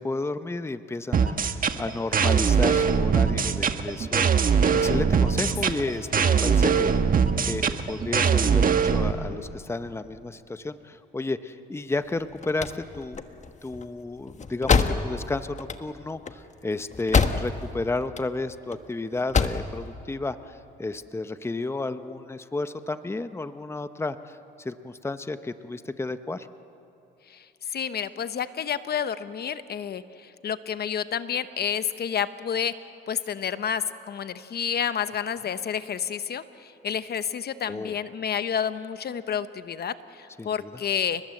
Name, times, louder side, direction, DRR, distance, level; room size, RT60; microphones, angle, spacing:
voice 1, 0.0-13.2 13.6-26.5 37.7-38.0 40.4-40.8, left 2 dB, 15° left, 11 dB, 0.9 m, -32 dB
sound 1, 1.1-9.1, right 6 dB, 45° right, 1.4 m, -22 dB
sound 2, 12.1-17.8 18.0-18.8 19.1-19.7, left 5 dB, 35° left, 1.4 m, -26 dB
voice 2, 27.3-32.7 33.1-41.2, left 8 dB, 55° left, 12 dB, 1.0 m, -30 dB
30.0 x 20.0 x 7.8 m, 3.0 s
cardioid pair, 90°, 20 cm